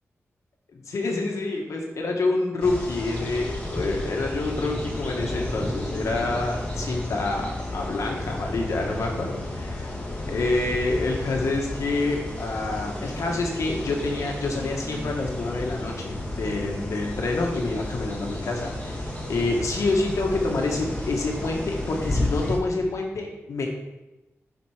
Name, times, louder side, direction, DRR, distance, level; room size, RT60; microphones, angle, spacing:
voice 1, 0.7-9.8 10.3-23.7, left 2 dB, 90° left, 1 dB, 1.6 m, -27 dB
sound 1, 2.6-22.6, left 1 dB, 25° left, 1.6 m, -32 dB
7.5 x 5.2 x 5.0 m, 1.0 s
wide cardioid pair, 150°, 5 cm